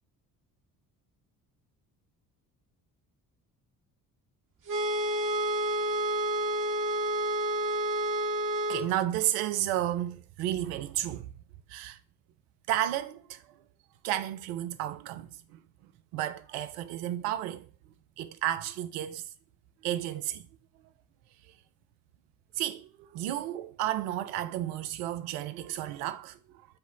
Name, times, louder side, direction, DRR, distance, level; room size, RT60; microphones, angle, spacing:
sound 1, 4.7-8.9, right 1 dB, 40° right, 0.9 m, -29 dB
voice 1, 8.7-11.3 11.7-12.0 12.7-13.4 14.0-15.6 16.1-17.7 18.2-19.3 19.8-20.5 22.5-26.4, right 13 dB, 75° right, 0.5 m, -32 dB
4.8 x 2.0 x 4.4 m
hypercardioid pair, 50°, 48 cm